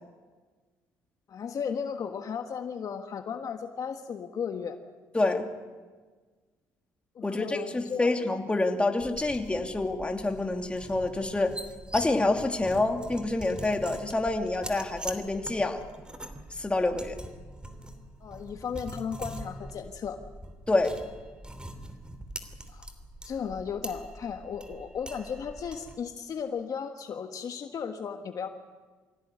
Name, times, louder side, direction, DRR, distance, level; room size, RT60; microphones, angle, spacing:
voice 1, 1.3-4.8 7.1-8.1 18.2-20.2 22.7-22.8 23.2-28.5, left 7 dB, 55° left, 6 dB, 1.5 m, -35 dB
voice 2, 5.1-5.5 7.2-11.6 11.9-15.8 16.5-17.2 20.7-21.0, left 2 dB, 15° left, 4 dB, 2.7 m, -27 dB
sound 1, 9.0-26.0, right 1 dB, 10° right, 2.9 m, -43 dB
24.0 x 16.5 x 9.8 m, 1.4 s
cardioid pair, 80°, 7 cm